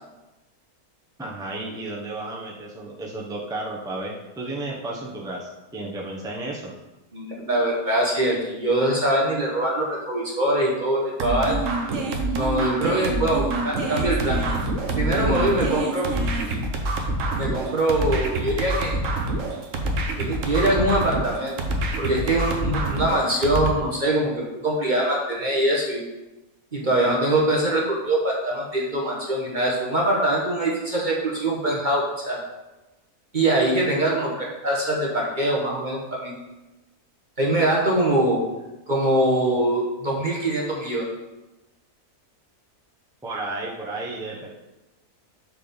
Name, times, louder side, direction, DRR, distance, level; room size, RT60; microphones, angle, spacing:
voice 1, 1.2-6.7 43.2-44.5, right 2 dB, 5° right, -3 dB, 0.8 m, -33 dB
voice 2, 7.1-11.6 12.3-14.4 14.9-16.1 17.3-19.0 20.2-21.6 22.0-26.0 26.7-32.4 33.3-36.3 37.4-38.4 38.9-41.1, right 1 dB, 35° right, -3 dB, 1.1 m, -23 dB
sound 1, 11.2-23.7, right 2 dB, 60° right, 1.2 m, -26 dB
6.0 x 4.8 x 5.2 m, 1.0 s
omnidirectional pair, 1.6 m